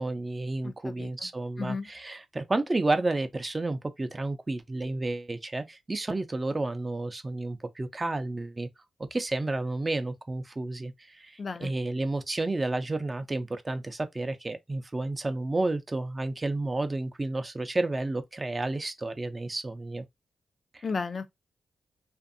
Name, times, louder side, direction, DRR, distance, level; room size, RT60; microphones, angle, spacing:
voice 1, 0.0-8.7 9.1-20.0 20.7-20.8, right 2 dB, 30° right, 0.5 m, -31 dB
voice 2, 0.6-1.3 1.6-1.9 11.4-11.7 20.8-21.3, left 4 dB, 55° left, 0.5 m, -34 dB
2.5 x 2.5 x 2.5 m
cardioid pair, 55°, 0 cm